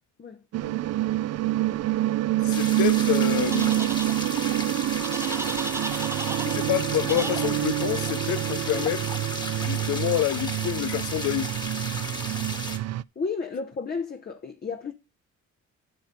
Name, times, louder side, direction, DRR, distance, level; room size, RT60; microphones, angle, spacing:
voice 1, 0.2-0.8 13.2-14.9, left 4 dB, 30° left, 0.9 m, -33 dB
sound 1, 0.5-13.0, right 15 dB, 55° right, 0.4 m, -27 dB
voice 2, 2.4-4.0 6.4-9.1 9.6-11.5, left 14 dB, 75° left, 0.7 m, -28 dB
sound 2, 2.5-12.8, left 2 dB, 15° left, 1.5 m, -35 dB
sound 3, 3.5-4.1 5.0-6.6 7.1-7.5, right 2 dB, 10° right, 0.6 m, -34 dB
9.2 x 6.0 x 5.2 m
cardioid pair, 90°, 30 cm